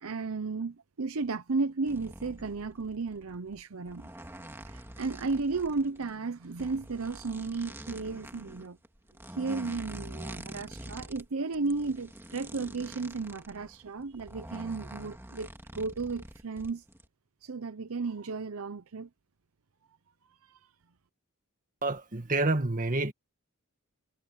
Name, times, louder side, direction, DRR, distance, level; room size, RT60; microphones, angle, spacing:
voice 1, 0.0-4.1 4.4-8.8 9.3-16.8 17.4-19.1 20.5-20.6, right 4 dB, 70° right, 0.7 m, -34 dB
sound 1, 1.9-3.6 3.9-6.2 6.4-11.3 11.5-17.1, right 1 dB, 10° right, 1.9 m, -46 dB
voice 2, 21.8-23.1, right 2 dB, 40° right, 2.0 m, -28 dB
head